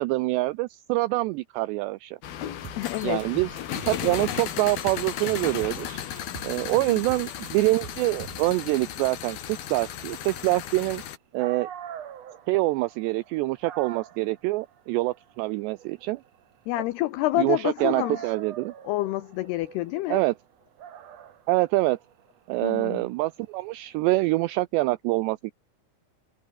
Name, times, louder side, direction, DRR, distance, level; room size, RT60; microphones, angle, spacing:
voice 1, 0.0-2.2 3.0-6.0 6.4-11.0 11.3-11.7 12.5-16.2 17.4-18.7 20.1-20.3 21.5-22.0 22.5-25.5, right 20 dB, 85° right, 2.4 m, -25 dB
sound 1, 2.2-11.2, left 10 dB, 55° left, 3.5 m, -35 dB
sound 2, 2.6-8.6, right 8 dB, 50° right, 4.0 m, -43 dB
voice 2, 2.8-3.4 3.7-3.8 6.9-7.0 16.7-18.4 18.8-20.2 22.6-23.1, left 17 dB, 90° left, 2.3 m, -28 dB
Dog, 11.1-11.2 11.4-17.4 17.8-24.6, right 9 dB, 70° right, 1.6 m, -44 dB
omnidirectional pair, 5.7 m